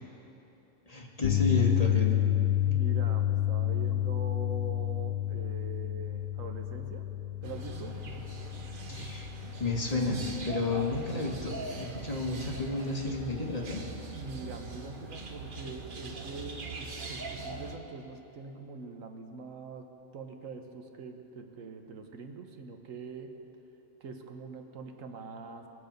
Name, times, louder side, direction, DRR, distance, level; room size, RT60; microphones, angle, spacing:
voice 1, 0.9-2.2 8.9-9.3 9.6-13.8, left 3 dB, 30° left, -1 dB, 1.4 m, -31 dB
sound 1, 1.2-13.5 13.8-14.1 16.3-16.4, left 13 dB, 75° left, 1.0 m, -31 dB
voice 2, 2.6-7.1 7.4-8.0 14.1-23.3 24.0-25.7, right 4 dB, 80° right, 5 dB, 1.3 m, -43 dB
sound 2, 7.4-17.8, right 3 dB, 45° right, 1.0 m, -41 dB
21.5 x 7.4 x 5.2 m, 3.0 s
omnidirectional pair, 1.4 m